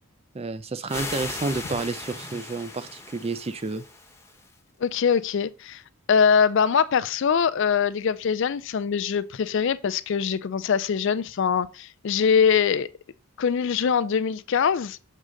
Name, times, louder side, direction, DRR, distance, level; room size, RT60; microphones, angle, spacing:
voice 1, 0.3-3.9, right 3 dB, 25° right, 0.4 m, -30 dB
sound 1, 0.9-4.5, left 3 dB, 10° left, 0.8 m, -37 dB
voice 2, 4.8-5.8 6.1-12.9 13.4-15.0, left 6 dB, 55° left, 0.4 m, -23 dB
6.5 x 3.7 x 6.2 m
head